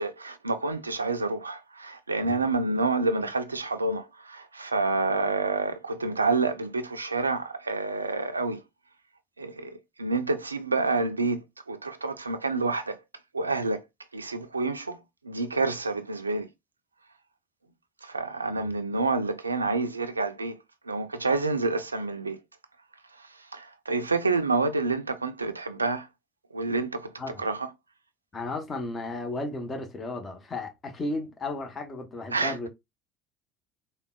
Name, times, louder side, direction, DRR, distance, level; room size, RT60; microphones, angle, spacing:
voice 1, 0.0-8.6 9.4-13.0 13.3-13.8 14.1-15.0 15.2-16.5 18.0-20.5 20.9-22.4 23.2-26.1 26.5-27.1 27.4-27.7 32.3-32.7, right 3 dB, 90° right, 0.3 m, -28 dB
voice 2, 28.3-32.7, left 2 dB, 30° left, 0.8 m, -34 dB
3.6 x 2.1 x 2.3 m
figure-of-eight pair, 65°, 0 cm